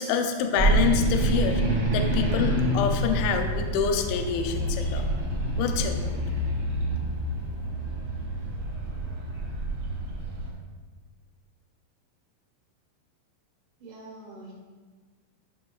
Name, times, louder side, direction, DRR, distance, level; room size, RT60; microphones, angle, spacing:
voice 1, 0.0-5.1 5.6-6.1, left 6 dB, 80° left, 5 dB, 2.9 m, -27 dB
sound 1, 0.6-10.5, right 1 dB, 55° right, 1.1 m, -27 dB
voice 2, 13.8-14.5, right 2 dB, 75° right, -4 dB, 1.7 m, -44 dB
13.5 x 5.9 x 2.3 m, 1.4 s
omnidirectional pair, 5.5 m